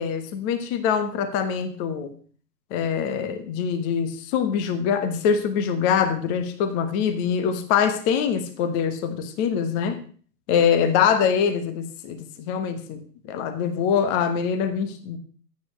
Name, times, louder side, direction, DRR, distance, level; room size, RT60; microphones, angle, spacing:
voice 1, 0.0-2.1 2.7-10.0 10.5-13.0 13.3-15.2, left 7 dB, 15° left, 1.3 m, -24 dB
25.5 x 9.1 x 3.2 m
figure-of-eight pair, 135°, 48 cm